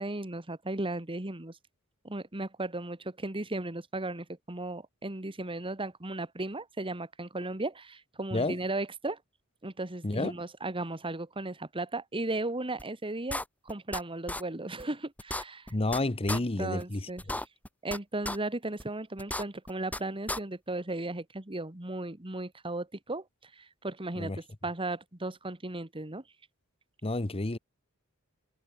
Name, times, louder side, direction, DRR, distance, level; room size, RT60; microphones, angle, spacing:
voice 1, 0.0-1.6 2.0-9.2 9.6-15.7 16.3-17.2 17.8-26.2, right 2 dB, 25° right, 1.8 m, -36 dB
sound 1, 12.8-12.9 13.3-14.0 14.3-14.4 14.8-14.9 15.2-16.0 16.3-16.4 16.8-16.9 17.2-18.0 18.3-18.4 18.8-18.9 19.2-20.0 20.3-20.4, left 1 dB, 5° left, 7.2 m, -34 dB
voice 2, 15.7-17.1 24.2-24.4 27.0-27.6, left 2 dB, 25° left, 1.0 m, -30 dB
head